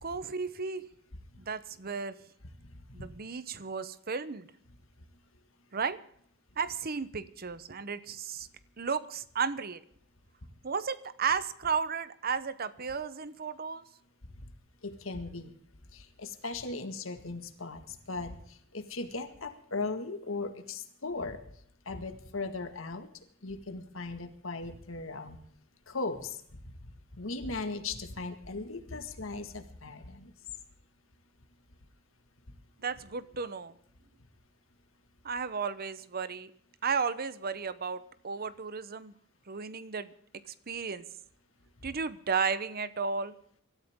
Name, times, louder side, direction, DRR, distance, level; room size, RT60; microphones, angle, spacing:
voice 1, 0.0-0.9 1.4-2.2 2.9-4.5 5.7-6.0 6.6-8.5 8.8-9.8 10.6-13.8 32.8-33.7 35.2-36.5 36.8-39.1 39.5-40.1 40.7-41.0 41.8-43.3, right 5 dB, 45° right, 15 dB, 0.9 m, -34 dB
voice 2, 14.8-15.5 15.9-21.4 21.9-23.1 23.4-25.4 25.9-26.4 26.8-30.3, left 3 dB, 75° left, 8 dB, 1.9 m, -38 dB
25.0 x 13.0 x 3.7 m, 0.65 s
head